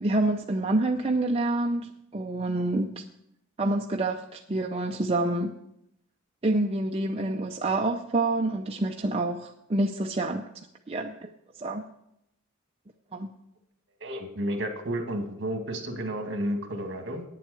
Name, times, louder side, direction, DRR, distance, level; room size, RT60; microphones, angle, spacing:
voice 1, 0.0-3.0 3.6-5.5 6.4-10.5 10.9-11.3 11.6-11.8 13.1-13.3, right 2 dB, 30° right, 2 dB, 0.5 m, -27 dB
voice 2, 14.0-17.3, right 1 dB, 55° right, 5 dB, 1.9 m, -31 dB
9.3 x 7.7 x 7.8 m, 0.80 s
head